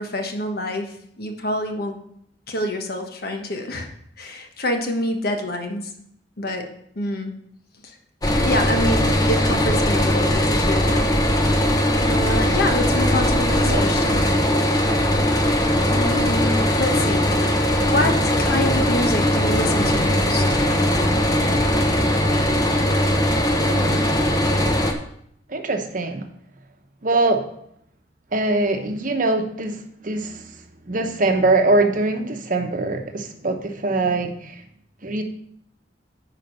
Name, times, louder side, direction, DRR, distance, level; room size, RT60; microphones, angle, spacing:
voice 1, 0.0-2.0 2.5-3.9 4.2-5.9 6.4-6.7 6.9-7.3 7.8-7.9 8.5-11.1 12.0-14.2 15.9-20.4, left 1 dB, 55° left, 4 dB, 1.3 m, -26 dB
sound 1, 8.2-24.9, left 1 dB, 20° left, 0.9 m, -20 dB
voice 2, 23.6-24.1 25.5-26.2 27.0-27.4 28.3-29.8 30.0-30.4 30.9-34.5 35.0-35.2, right 2 dB, 45° right, 5 dB, 1.0 m, -22 dB
9.6 x 5.1 x 5.4 m, 0.71 s
head